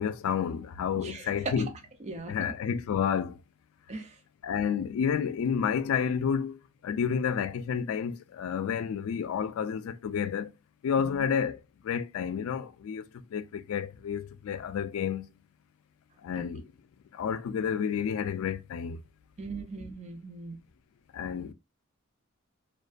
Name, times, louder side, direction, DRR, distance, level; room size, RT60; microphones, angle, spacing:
voice 1, 0.0-1.8 2.3-3.4 4.4-10.5 10.8-15.3 16.2-16.7 17.1-19.0 21.1-21.5, left 7 dB, 80° left, 0.3 m, -30 dB
voice 2, 1.0-1.5 2.0-2.3 3.9-4.2 11.0-11.2 16.3-16.4 19.4-20.6, right 3 dB, 35° right, 0.5 m, -39 dB
2.4 x 2.2 x 2.3 m
head